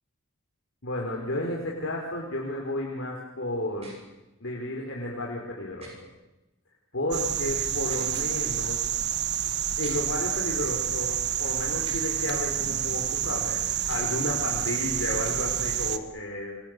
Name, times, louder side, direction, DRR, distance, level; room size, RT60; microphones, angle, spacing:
voice 1, 0.8-3.9 4.4-5.9 6.9-8.8 9.8-13.6 13.9-16.6, left 1 dB, 65° left, -1 dB, 4.7 m, -32 dB
sound 1, 3.8-4.0 5.8-5.9 7.8-8.1 9.8-10.0 11.8-12.1 13.8-14.1, right 2 dB, 30° right, 7.5 m, -46 dB
sound 2, 7.1-16.0, right 10 dB, 50° right, 1.6 m, -28 dB
30.0 x 25.5 x 6.8 m, 1.0 s
head